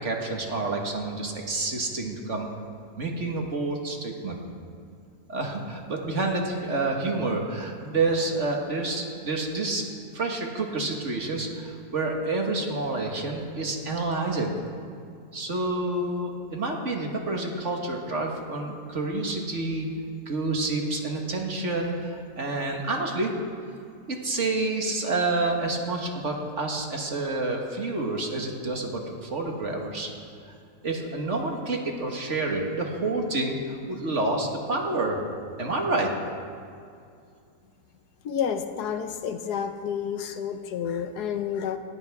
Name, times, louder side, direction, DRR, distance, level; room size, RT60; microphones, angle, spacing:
voice 1, 0.0-2.5 3.0-4.4 5.3-9.8 10.1-14.5 15.3-19.9 20.3-23.3 24.1-30.1 30.8-35.2 35.6-36.1, right 2 dB, 45° right, 1 dB, 1.9 m, -28 dB
voice 2, 38.2-41.8, left 8 dB, 75° left, 8 dB, 1.4 m, -30 dB
19.5 x 14.5 x 3.6 m, 2.4 s
omnidirectional pair, 1.7 m